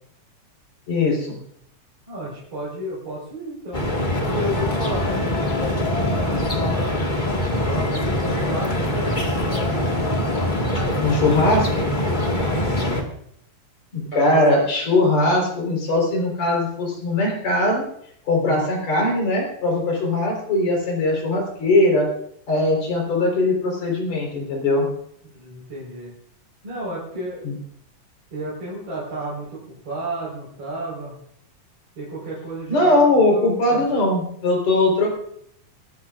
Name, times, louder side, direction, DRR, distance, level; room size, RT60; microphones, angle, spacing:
voice 1, 0.9-1.4 11.0-11.9 13.9-17.8 18.3-22.1 22.5-24.9 27.4-27.5 32.7-35.1, left 2 dB, 65° left, 0 dB, 5.5 m, -20 dB
voice 2, 2.1-3.9 4.2-7.0 7.6-9.7 12.6-13.1 14.1-14.4 18.3-18.7 25.3-26.1 26.6-27.5 28.3-31.1 32.0-33.9, right 1 dB, 50° right, -7 dB, 5.6 m, -33 dB
sound 1, 3.7-13.0, left 1 dB, 20° left, 1.3 m, -23 dB
24.5 x 13.5 x 2.5 m, 0.68 s
omnidirectional pair, 3.4 m